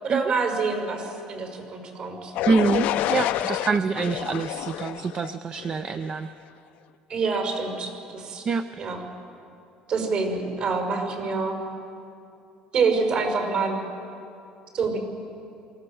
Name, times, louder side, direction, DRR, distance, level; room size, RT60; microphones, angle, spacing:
voice 1, 0.0-2.3 7.1-8.5 8.8-9.0 9.9-11.6 12.7-13.8 14.7-15.0, right 4 dB, 55° right, 3 dB, 5.5 m, -26 dB
sound 1, 2.4-6.2, left 13 dB, 75° left, 0.6 m, -28 dB
voice 2, 2.5-6.3 8.5-8.7, right 5 dB, 35° right, 11 dB, 0.5 m, -25 dB
24.0 x 16.5 x 7.1 m, 2.6 s
cardioid pair, 120°, 3 cm